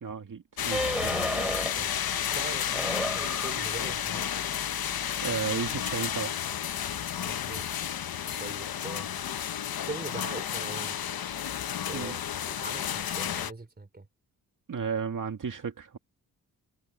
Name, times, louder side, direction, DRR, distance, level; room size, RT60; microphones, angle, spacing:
voice 1, 0.0-1.2 5.2-6.3 11.9-12.2 14.7-16.0, right 6 dB, 55° right, 2.2 m, -33 dB
sound 1, 0.6-13.5, left 9 dB, 70° left, 1.1 m, -32 dB
sound 2, 0.7-1.9 2.3-5.9, equal, 5° right, 4.3 m, -35 dB
voice 2, 1.4-1.9 2.4-4.3 7.2-7.7 8.4-9.1 9.9-11.0 11.9-12.2 12.5-14.1, right 3 dB, 25° right, 3.6 m, -41 dB
cardioid pair, 70°, 37 cm